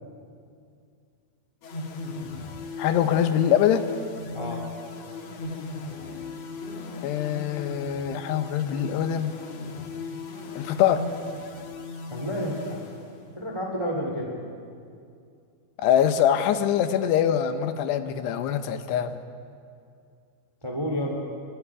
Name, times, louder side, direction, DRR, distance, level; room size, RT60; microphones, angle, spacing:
sound 1, 1.6-13.5, left 3 dB, 60° left, 1.8 m, -37 dB
voice 1, 2.8-3.8 7.0-9.3 10.6-11.1 15.8-19.2, left 9 dB, 75° left, 9 dB, 2.9 m, -23 dB
voice 2, 4.3-4.7 12.1-12.8 13.4-14.3 20.6-21.2, equal, 10° right, 0 dB, 1.9 m, -30 dB
29.5 x 24.5 x 4.9 m, 2.4 s
omnidirectional pair, 5.2 m